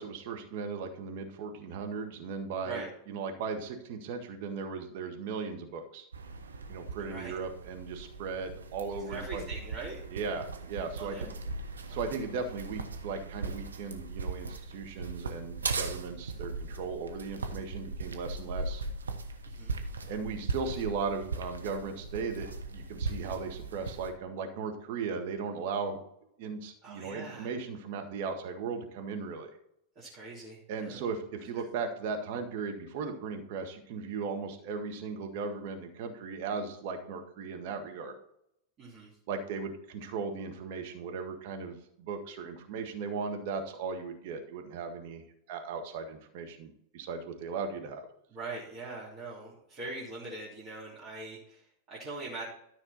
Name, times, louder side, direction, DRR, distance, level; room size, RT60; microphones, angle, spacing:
voice 1, 0.0-6.1 6.7-9.4 10.1-11.3 11.9-18.8 20.1-26.0 26.4-29.5 30.7-38.2 39.3-45.2 45.5-48.0, right 5 dB, 50° right, 4 dB, 1.8 m, -37 dB
sound 1, 6.1-24.1, right 3 dB, 70° right, 1.1 m, -39 dB
voice 2, 9.0-10.0 11.0-11.3 11.9-12.2 19.5-19.7 26.8-27.5 29.9-31.0 38.8-39.1 48.3-52.4, right 3 dB, 35° right, -7 dB, 3.1 m, -42 dB
13.0 x 5.9 x 4.2 m, 0.75 s
figure-of-eight pair, 90°, 0 cm